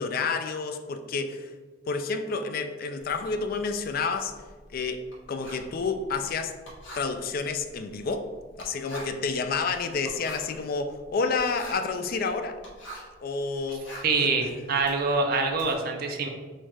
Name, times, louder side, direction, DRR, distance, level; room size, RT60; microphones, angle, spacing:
voice 1, 0.0-1.5 1.9-4.3 4.7-5.0 5.3-6.6 6.9-8.3 8.6-12.6 13.2-13.9 14.2-14.3, left 4 dB, 45° left, 8 dB, 0.3 m, -29 dB
Writing, 3.0-13.2 13.6-15.7, equal, 75° left, 1.5 m, -45 dB
voice 2, 14.0-16.3, right 4 dB, 50° right, 3 dB, 0.6 m, -25 dB
4.4 x 2.4 x 4.6 m, 1.4 s
head